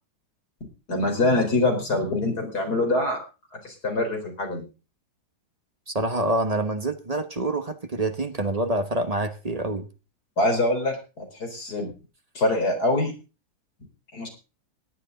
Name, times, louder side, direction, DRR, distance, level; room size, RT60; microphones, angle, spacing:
voice 1, 0.9-3.2 3.6-4.6 10.4-11.9 12.3-13.1 14.1-14.3, left 2 dB, 50° left, 3 dB, 4.7 m, -24 dB
voice 2, 5.9-9.9, right 2 dB, 30° right, 8 dB, 0.7 m, -26 dB
18.0 x 11.5 x 3.9 m, 0.33 s
omnidirectional pair, 2.2 m